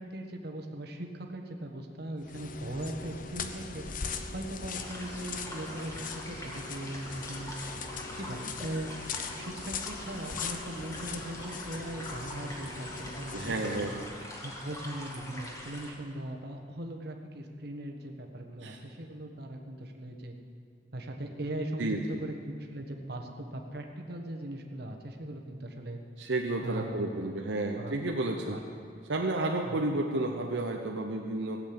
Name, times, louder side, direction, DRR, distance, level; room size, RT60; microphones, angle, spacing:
voice 1, 0.0-3.8 4.3-7.5 8.2-8.9 9.4-14.0 14.4-20.3 20.9-26.0 26.6-28.0 28.5-28.6 29.6-29.8, right 1 dB, 60° right, 2 dB, 1.5 m, -39 dB
sound 1, 2.2-14.1, left 5 dB, 45° left, 0.8 m, -40 dB
sound 2, 4.8-15.9, left 1 dB, 15° left, 2.1 m, -44 dB
voice 2, 13.3-14.1 18.6-18.8 21.8-22.0 26.2-28.6 29.1-31.6, right 2 dB, 80° right, 1 dB, 0.9 m, -31 dB
16.5 x 8.0 x 8.8 m, 2.5 s
head